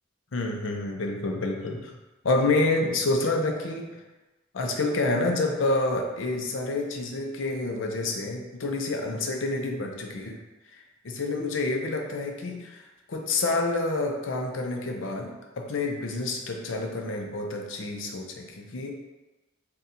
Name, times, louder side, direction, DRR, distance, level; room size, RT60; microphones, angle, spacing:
voice 1, 0.3-1.9 2.2-4.0 4.5-10.4 10.7-18.9, left 2 dB, 70° left, 2 dB, 0.6 m, -28 dB
3.8 x 2.3 x 4.1 m, 1.1 s
head